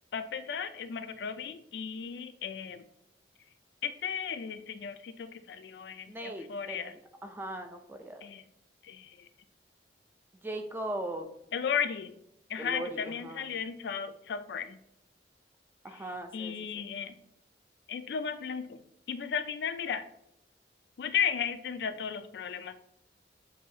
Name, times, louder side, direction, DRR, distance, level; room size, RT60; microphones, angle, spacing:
voice 1, 0.1-2.8 3.8-6.9 8.2-8.4 8.8-9.3 11.5-12.1 12.5-14.8 15.9-16.1 16.3-17.1 17.9-18.8 19.1-20.0 21.0-22.7, left 7 dB, 65° left, 10 dB, 0.3 m, -35 dB
voice 2, 6.1-8.2 10.4-11.3 12.6-13.5 15.8-16.8, right 1 dB, 10° right, 5 dB, 0.4 m, -39 dB
7.0 x 2.7 x 2.7 m, 0.75 s
head